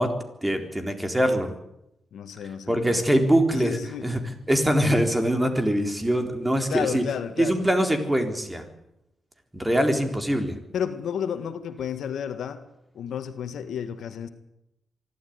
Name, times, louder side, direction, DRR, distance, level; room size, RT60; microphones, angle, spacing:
voice 1, 0.0-1.5 2.7-7.0 7.4-8.7 9.5-10.6, equal, 10° right, 6 dB, 3.9 m, -23 dB
voice 2, 2.1-3.2 3.5-4.0 6.7-7.7 10.7-12.6 12.9-14.3, left 8 dB, 80° left, 10 dB, 1.8 m, -32 dB
24.5 x 12.5 x 9.6 m, 0.84 s
cardioid pair, 75°, 0 cm